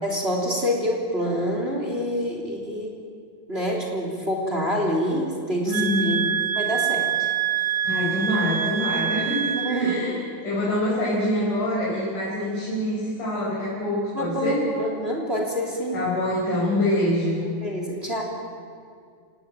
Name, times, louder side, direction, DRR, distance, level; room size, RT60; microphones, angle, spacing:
voice 1, 0.0-2.9 3.5-6.2 6.5-7.3 9.5-10.1 14.1-16.0 17.6-18.2, equal, 20° right, 1 dB, 3.4 m, -26 dB
voice 2, 5.7-6.2 7.8-14.7 15.9-17.4, left 1 dB, 80° left, -7 dB, 6.9 m, -25 dB
sound 1, 5.7-10.0, right 9 dB, 80° right, 1.0 m, -26 dB
28.0 x 18.5 x 9.1 m, 2.3 s
omnidirectional pair, 3.6 m